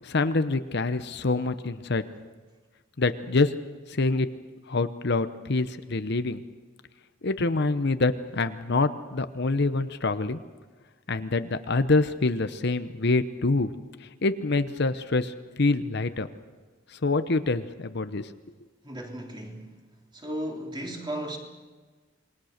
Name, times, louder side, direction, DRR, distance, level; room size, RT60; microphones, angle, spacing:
voice 1, 0.0-2.0 3.0-3.5 3.9-4.3 4.7-6.4 7.2-10.4 11.1-13.7 14.2-16.3 16.9-18.3, left 3 dB, 55° left, 11 dB, 0.9 m, -26 dB
voice 2, 18.8-19.8 20.1-21.4, right 1 dB, 25° right, 1 dB, 3.4 m, -35 dB
27.5 x 20.5 x 6.6 m, 1.4 s
head